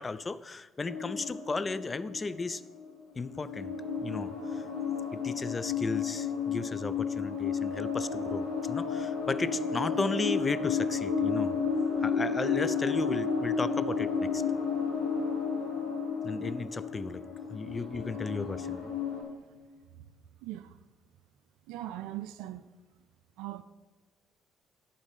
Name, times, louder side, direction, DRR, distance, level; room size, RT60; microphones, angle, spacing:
voice 1, 0.0-2.6 3.2-4.6 5.1-11.6 12.0-14.4 16.2-18.9, left 3 dB, 30° left, 0.4 m, -35 dB
sound 1, 0.8-2.8 3.2-19.2, left 5 dB, 85° left, 2.2 m, -32 dB
voice 2, 20.4-20.7 21.7-22.7 23.4-23.6, right 14 dB, 70° right, 0.3 m, -39 dB
11.0 x 4.2 x 6.5 m
hypercardioid pair, 50°, 0 cm